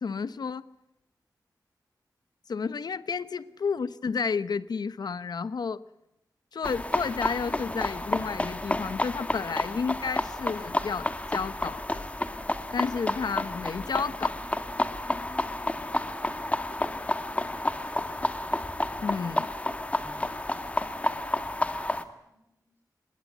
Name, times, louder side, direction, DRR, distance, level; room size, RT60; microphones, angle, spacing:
voice 1, 0.0-0.7 2.5-5.8 6.5-12.1 12.7-14.4 19.0-19.5, left 5 dB, 80° left, 15 dB, 0.8 m, -31 dB
sound 1, 6.6-22.0, left 1 dB, 20° left, 2.0 m, -30 dB
voice 2, 20.2-22.8, right 1 dB, 25° right, 2 dB, 5.2 m, -67 dB
26.5 x 21.5 x 8.0 m, 0.88 s
wide cardioid pair, 135°, 7 cm